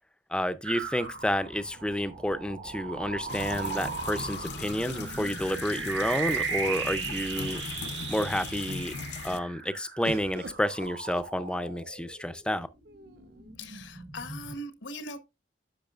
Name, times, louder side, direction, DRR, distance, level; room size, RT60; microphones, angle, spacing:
voice 1, 0.3-7.6 8.1-8.9 9.2-12.7, equal, 5° left, 0.4 m, -30 dB
sound 1, 0.6-12.5 12.9-14.6, right 5 dB, 75° right, 1.9 m, -37 dB
sound 2, 1.7-2.8 4.8-6.3 7.1-7.2 7.5-8.1 10.0-11.9 12.8-13.5, right 2 dB, 55° right, 0.7 m, -46 dB
sound 3, 3.3-9.4, left 5 dB, 60° left, 0.6 m, -39 dB
voice 2, 13.6-15.2, left 1 dB, 85° left, 1.1 m, -40 dB
10.5 x 6.3 x 2.4 m
head